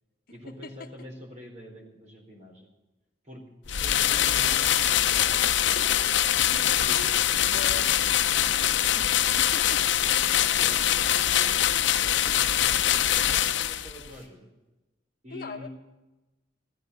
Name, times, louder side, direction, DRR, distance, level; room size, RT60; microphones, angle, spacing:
voice 1, 0.3-2.7 3.2-6.3 6.8-7.1 7.5-8.0 10.5-14.5 15.2-15.7, equal, 40° right, 1 dB, 4.2 m, -46 dB
sound 1, 3.7-14.1, left 11 dB, 70° left, 0.7 m, -23 dB
sound 2, 5.7-7.2 7.7-8.3 8.6-8.8 9.6-10.1 10.4-10.5 12.2-12.4 12.7-14.3, right 1 dB, 70° right, 3.7 m, -46 dB
voice 2, 7.3-8.1 8.9-9.8 10.1-10.2 15.3-15.7, left 4 dB, 50° left, 6 dB, 1.1 m, -40 dB
15.0 x 14.0 x 6.8 m, 1.1 s
head